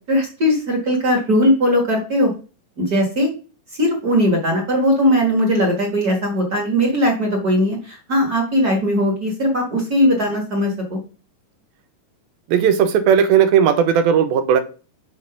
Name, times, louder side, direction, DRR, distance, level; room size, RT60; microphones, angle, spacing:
voice 1, 0.1-2.3 2.8-3.3 3.7-11.0, equal, 40° right, 1 dB, 1.4 m, -19 dB
voice 2, 12.5-14.6, right 8 dB, 90° right, 10 dB, 2.6 m, -15 dB
6.4 x 4.2 x 5.8 m, 0.35 s
omnidirectional pair, 4.1 m